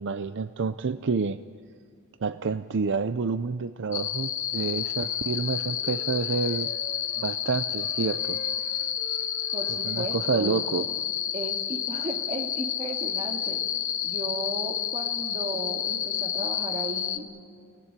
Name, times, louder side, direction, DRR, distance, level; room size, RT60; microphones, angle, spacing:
voice 1, 0.0-1.4 2.2-6.7 7.2-8.4 9.7-10.9, right 4 dB, 55° right, 12 dB, 0.5 m, -28 dB
sound 1, 3.9-17.2, left 9 dB, 60° left, 1.3 m, -30 dB
Wind instrument woodwind instrument, 4.3-7.3 7.7-11.1, left 2 dB, 35° left, 4.1 m, -48 dB
voice 2, 9.5-10.7 11.3-13.6 14.0-17.3, right 1 dB, 30° right, 2 dB, 2.4 m, -35 dB
24.5 x 18.0 x 9.9 m, 2.2 s
head